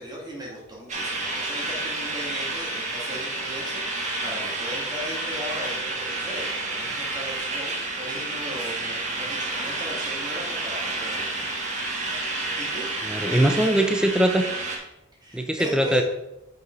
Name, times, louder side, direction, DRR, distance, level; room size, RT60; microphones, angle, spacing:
voice 1, 0.0-11.5 12.6-12.9 13.2-13.4 15.2-16.0, equal, 20° right, -3 dB, 2.4 m, -37 dB
sound 1, 0.9-14.8, right 2 dB, 35° right, 1.3 m, -30 dB
voice 2, 13.0-14.5 15.3-16.0, right 1 dB, 5° right, 5 dB, 0.5 m, -21 dB
8.1 x 5.5 x 3.9 m, 0.89 s
head